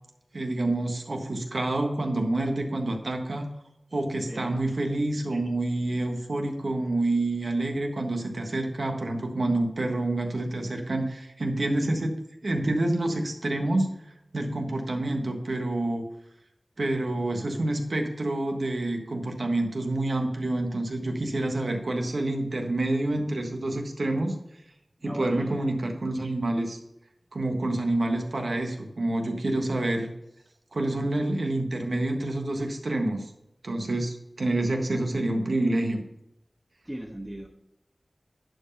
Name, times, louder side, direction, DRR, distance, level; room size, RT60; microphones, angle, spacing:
voice 1, 0.3-3.5 3.9-12.1 12.4-13.9 14.3-16.1 16.8-24.3 25.0-26.8 27.3-30.1 30.7-33.3 33.6-36.0, right 2 dB, 75° right, 3 dB, 1.4 m, -28 dB
voice 2, 25.0-25.7 36.8-37.5, right 1 dB, 10° right, 0 dB, 1.1 m, -38 dB
11.0 x 4.8 x 5.4 m, 0.86 s
wide cardioid pair, 45°, 0 cm